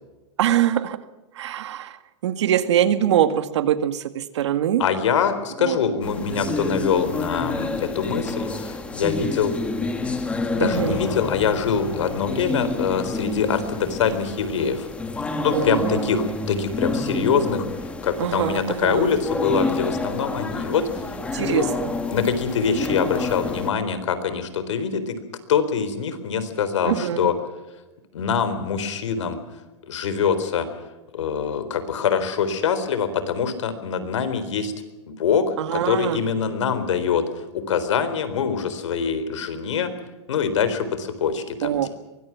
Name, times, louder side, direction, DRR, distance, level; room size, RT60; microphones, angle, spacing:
voice 1, 0.4-1.0 1.4-2.0 2.2-4.8 5.6-5.8 10.6-11.0 15.5-16.0 18.2-19.1 21.3-21.9 26.8-27.3 35.6-36.2 41.6-41.9, right 10 dB, 75° right, 11 dB, 1.9 m, -23 dB
voice 2, 4.8-9.6 10.5-14.9 15.3-17.7 18.0-21.7 22.1-25.2 25.5-27.3 28.1-29.4 29.9-30.7 31.1-34.7 35.2-39.9 40.3-41.9, left 6 dB, 85° left, 11 dB, 4.0 m, -24 dB
sound 1, 6.0-23.7, left 3 dB, 10° left, 1.8 m, -29 dB
sound 2, 9.9-15.6, left 6 dB, 45° left, 4.9 m, -39 dB
24.0 x 20.5 x 6.0 m, 1.1 s
supercardioid pair, 160°, 15 cm